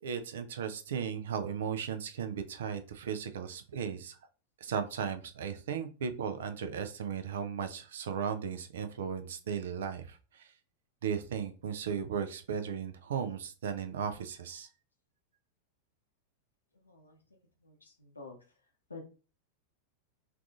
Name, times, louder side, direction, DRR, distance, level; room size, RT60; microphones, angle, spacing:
voice 1, 0.0-4.2 4.6-10.5 11.0-14.7, right 7 dB, 60° right, 10 dB, 0.4 m, -36 dB
voice 2, 16.7-18.4 18.9-19.0, left 3 dB, 80° left, 1 dB, 0.8 m, -50 dB
4.6 x 2.5 x 2.4 m, 0.35 s
figure-of-eight pair, 90°, 0 cm